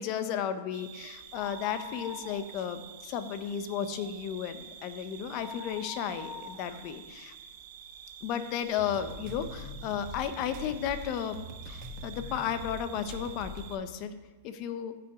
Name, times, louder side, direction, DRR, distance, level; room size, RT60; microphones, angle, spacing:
voice 1, 0.0-7.3 8.2-11.4 11.7-14.2 14.4-14.9, left 9 dB, 40° left, 10 dB, 0.7 m, -34 dB
sound 1, 0.7-13.8, right 9 dB, 55° right, 0.8 m, -49 dB
sound 2, 1.2-2.9 3.2-3.3 3.8-8.1 8.7-8.8 9.6-9.7 9.9-10.0, left 4 dB, 25° left, 1.2 m, -46 dB
sound 3, 8.6-13.7, equal, 40° right, 1.5 m, -43 dB
14.0 x 5.9 x 3.7 m, 1.3 s
supercardioid pair, 145°, 0 cm